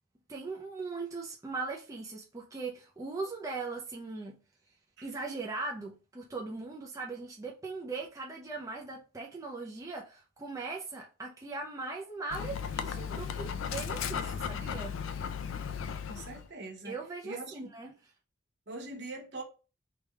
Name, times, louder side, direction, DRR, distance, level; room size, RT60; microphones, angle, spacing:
voice 1, 0.3-4.4 5.0-15.0 16.8-17.9, right 3 dB, 15° right, 0.4 m, -39 dB
Dog, 12.3-16.5, left 7 dB, 85° left, 0.4 m, -36 dB
voice 2, 16.1-17.0 17.2-17.7 18.7-19.4, right 2 dB, 60° right, 0.8 m, -42 dB
3.3 x 2.3 x 3.1 m
head